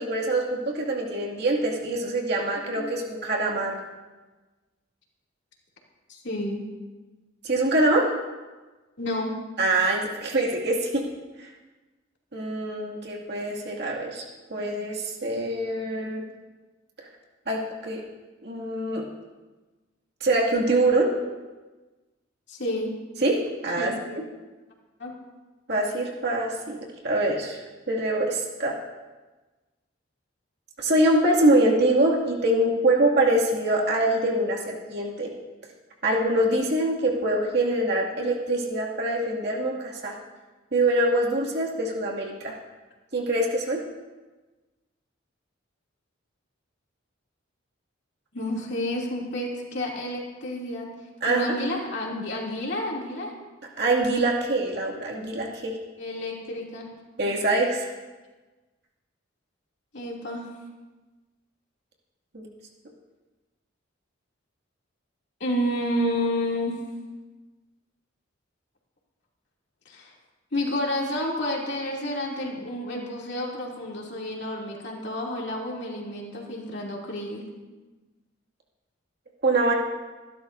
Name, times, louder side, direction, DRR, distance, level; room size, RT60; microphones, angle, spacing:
voice 1, 0.0-3.8 7.4-8.1 9.6-11.0 11.4-11.5 12.3-14.2 14.5-16.2 17.5-18.0 18.4-19.0 20.2-21.1 23.2-24.1 25.7-26.8 27.0-27.6 27.9-28.8 30.8-35.3 36.0-40.1 40.7-42.6 43.1-43.8 51.2-51.6 53.8-55.7 57.2-57.9 62.3-62.5 79.4-79.7, right 1 dB, 55° right, -2 dB, 2.3 m, -24 dB
voice 2, 6.1-6.6 9.0-9.3 16.0-16.1 22.5-22.9 23.8-24.0 25.0-25.1 48.3-50.9 51.3-53.3 56.0-56.9 59.9-60.4 65.4-66.7 69.9-70.1 70.5-77.4, left 1 dB, 60° left, -2 dB, 2.7 m, -30 dB
25.0 x 12.0 x 2.7 m, 1.2 s
head